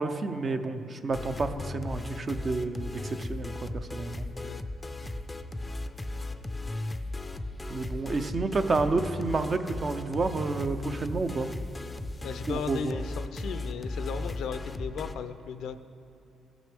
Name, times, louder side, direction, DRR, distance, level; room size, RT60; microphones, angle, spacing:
voice 1, 0.0-3.5 3.9-4.3 7.7-11.5 12.5-13.0, right 3 dB, 40° right, 8 dB, 0.6 m, -30 dB
sound 1, 1.1-15.1, left 2 dB, 15° left, 0.4 m, -36 dB
voice 2, 4.3-4.6 12.2-15.7, left 6 dB, 75° left, 11 dB, 0.4 m, -36 dB
16.0 x 6.2 x 3.5 m, 2.8 s
cardioid pair, 90°, 0 cm